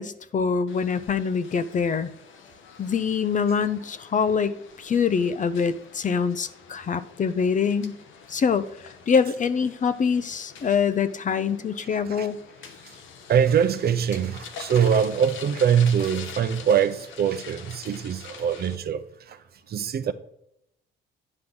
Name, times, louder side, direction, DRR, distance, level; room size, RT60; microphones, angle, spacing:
voice 1, 0.0-2.1 2.8-8.0 8.3-8.6 9.1-12.4, left 6 dB, 40° left, 0.5 m, -24 dB
sound 1, 0.7-18.8, left 6 dB, 75° left, 1.0 m, -45 dB
voice 2, 13.3-19.4 19.7-20.1, right 8 dB, 50° right, 0.6 m, -23 dB
9.7 x 3.7 x 6.1 m
cardioid pair, 90°, 20 cm